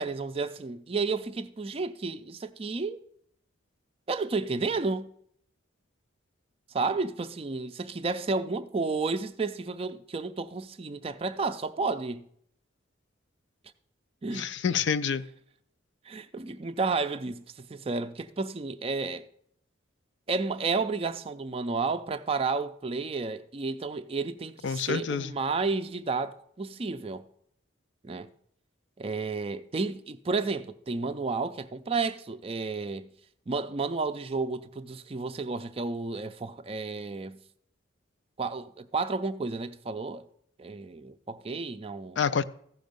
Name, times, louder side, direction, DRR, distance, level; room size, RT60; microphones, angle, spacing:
voice 1, 0.0-3.0 4.1-5.1 6.7-12.2 14.2-14.5 16.1-19.3 20.3-27.2 28.0-28.3 29.0-33.1 33.5-37.4 38.4-40.3 40.6-42.2, right 4 dB, 30° right, 0.4 m, -31 dB
voice 2, 14.3-15.2 24.6-25.3 42.2-42.4, left 6 dB, 60° left, 0.4 m, -27 dB
14.5 x 5.2 x 5.2 m
head